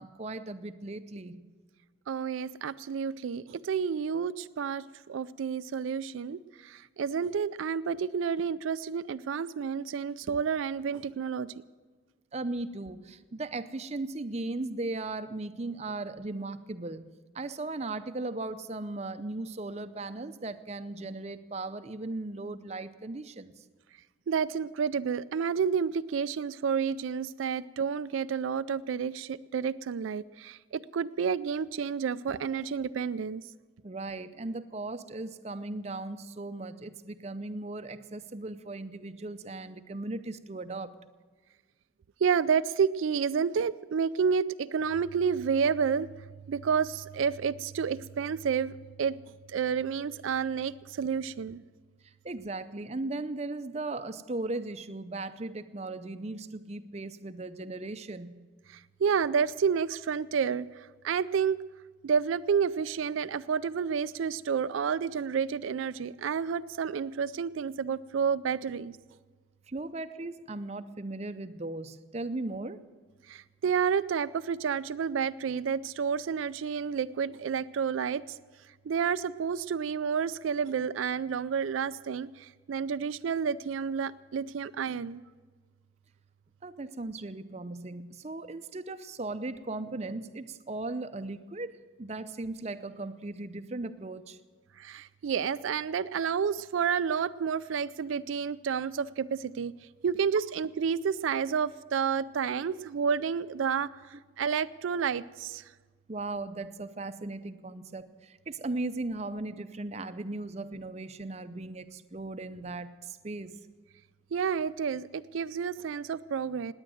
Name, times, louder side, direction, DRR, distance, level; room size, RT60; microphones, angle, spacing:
voice 1, 0.0-1.4 12.3-17.1 17.3-23.6 33.8-40.9 52.0-58.4 69.7-72.8 86.6-91.7 92.0-94.4 106.1-113.6, right 2 dB, 35° right, 10 dB, 0.6 m, -37 dB
voice 2, 2.1-11.5 24.3-33.4 42.2-51.6 58.7-61.6 62.0-69.0 73.3-78.2 78.8-85.2 94.8-99.7 100.0-105.7 114.3-116.7, right 6 dB, 85° right, 14 dB, 0.4 m, -30 dB
18.0 x 9.7 x 7.7 m, 1.4 s
head